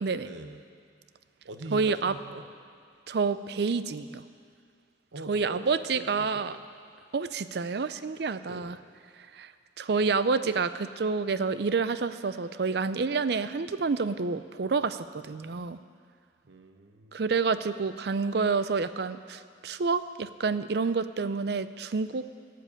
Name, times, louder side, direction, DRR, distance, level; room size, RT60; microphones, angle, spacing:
voice 1, 0.2-0.6 1.4-2.4 5.1-5.7 5.9-6.6 8.5-8.8 16.4-17.2, right 2 dB, 90° right, 7 dB, 0.9 m, -43 dB
voice 2, 1.7-2.1 3.1-4.2 5.3-6.6 7.1-8.8 9.3-9.5 9.8-15.8 17.1-22.2, right 4 dB, 60° right, 13 dB, 0.5 m, -28 dB
12.5 x 7.7 x 8.2 m, 2.2 s
head